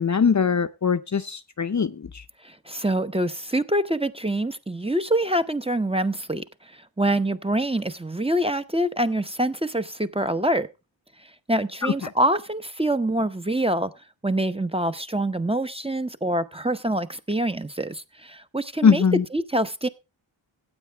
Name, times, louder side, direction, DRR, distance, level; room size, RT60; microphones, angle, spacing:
voice 1, 0.0-2.1 11.8-12.1 18.8-19.2, left 6 dB, 40° left, 0.6 m, -21 dB
voice 2, 2.4-10.7 11.5-13.9 14.2-19.0 19.3-19.9, right 1 dB, 10° right, 0.8 m, -25 dB
15.0 x 8.5 x 3.4 m
wide cardioid pair, 80°, 47 cm